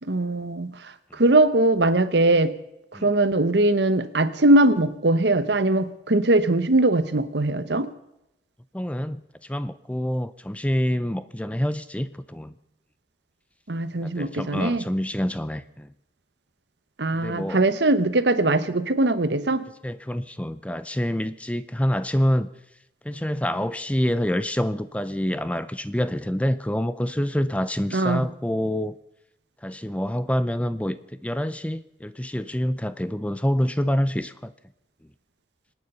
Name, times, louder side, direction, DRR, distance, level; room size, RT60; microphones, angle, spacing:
voice 1, 0.0-2.5 3.0-7.9 13.7-14.8 17.0-19.6 27.9-28.3, right 2 dB, 75° right, 13 dB, 1.0 m, -21 dB
voice 2, 8.7-12.5 14.0-15.9 17.1-17.6 19.8-22.5 23.0-29.0 29.6-34.5, equal, 5° left, 14 dB, 0.5 m, -27 dB
25.5 x 9.4 x 5.5 m, 0.85 s
head